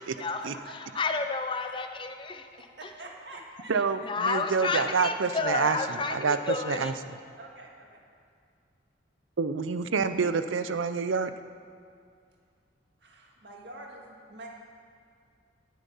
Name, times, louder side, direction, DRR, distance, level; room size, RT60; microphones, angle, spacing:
voice 1, 0.2-1.0 1.6-1.7 2.6-3.7 4.0-4.1 7.4-8.0 13.0-14.5, right 2 dB, 60° right, -1 dB, 1.9 m, -47 dB
voice 2, 1.0-2.5 4.0-7.0, left 4 dB, 25° left, 6 dB, 0.6 m, -30 dB
voice 3, 3.7-6.9 9.4-11.3, right 5 dB, 85° right, 10 dB, 0.6 m, -27 dB
18.0 x 7.4 x 5.5 m, 2.3 s
head